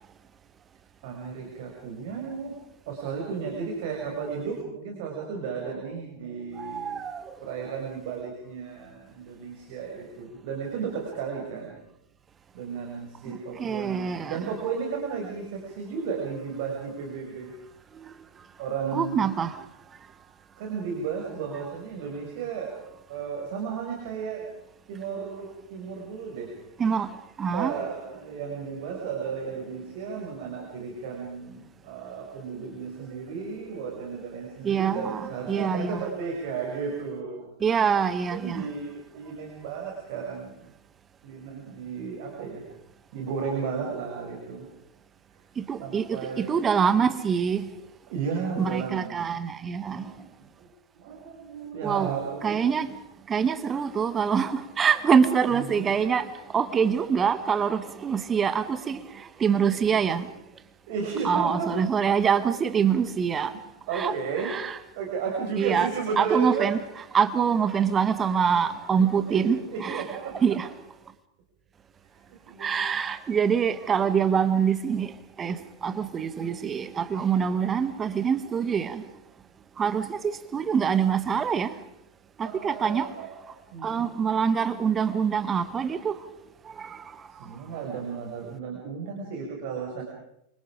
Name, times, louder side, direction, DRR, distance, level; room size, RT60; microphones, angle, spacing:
voice 1, 1.0-2.5 2.9-7.0 7.4-11.8 12.5-17.5 18.6-19.3 20.6-22.8 23.1-24.4 24.9-26.5 27.5-37.5 38.4-40.7 41.2-42.6 43.1-44.7 45.8-46.6 48.1-49.4 49.9-50.7 50.9-52.6 55.5-56.1 59.7-60.0 60.9-61.7 63.9-64.5 65.0-66.7 69.1-70.3 72.1-72.9 82.4-83.3 83.7-84.1 87.3-90.0, right 6 dB, 50° right, 6.4 m, -34 dB
voice 2, 6.6-7.3 13.6-14.4 18.0-18.1 18.9-19.6 26.8-27.7 34.6-36.0 37.6-38.7 45.6-47.7 48.6-50.1 51.8-52.1 52.4-52.9 53.3-60.3 61.2-63.6 63.9-64.1 64.4-64.8 65.6-65.9 66.2-66.8 67.1-70.0 70.3-70.7 72.6-79.0 79.8-81.8 82.4-83.2 83.8-86.2 86.6-87.3, right 7 dB, 20° right, 1.6 m, -25 dB
28.5 x 25.5 x 5.1 m
figure-of-eight pair, 90°, 0 cm